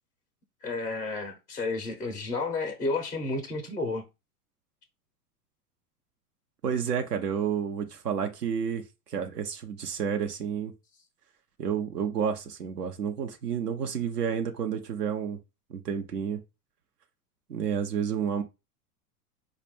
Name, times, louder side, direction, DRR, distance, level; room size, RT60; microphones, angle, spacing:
voice 1, 0.6-4.0, left 3 dB, 10° left, 0.3 m, -31 dB
voice 2, 6.6-8.8 9.1-10.7 11.6-15.4 15.7-16.4 17.5-18.4, right 7 dB, 80° right, 0.7 m, -30 dB
4.3 x 2.4 x 3.3 m
figure-of-eight pair, 95°, 46 cm